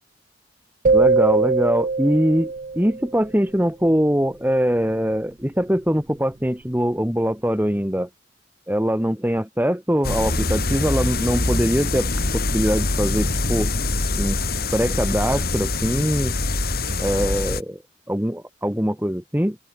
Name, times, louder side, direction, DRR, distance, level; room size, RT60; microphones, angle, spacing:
sound 1, 0.8-3.1, right 4 dB, 45° right, 0.5 m, -20 dB
voice 1, 0.9-8.1 8.7-13.7 14.1-14.4 14.7-16.3 17.0-17.8 18.1-19.6, equal, 10° right, 2.0 m, -22 dB
sound 2, 10.0-17.6, left 2 dB, 55° left, 3.2 m, -24 dB
open air
head